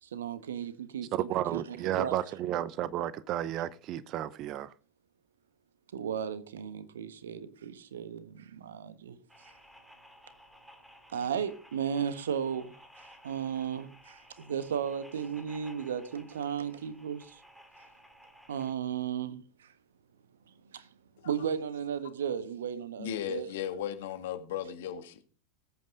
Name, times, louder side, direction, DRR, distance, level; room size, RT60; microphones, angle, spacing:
voice 1, 0.0-1.1 1.5-2.2 5.9-9.5 11.1-17.4 18.5-19.7 20.7-20.9 21.2-23.5, right 8 dB, 65° right, 1.3 m, -35 dB
voice 2, 1.1-4.7, right 12 dB, 35° right, 0.8 m, -32 dB
sound 1, 9.3-18.7, equal, ahead, 2.6 m, -56 dB
voice 3, 23.0-25.2, left 10 dB, 55° left, 1.9 m, -36 dB
20.0 x 8.8 x 3.8 m
figure-of-eight pair, 90°, 0 cm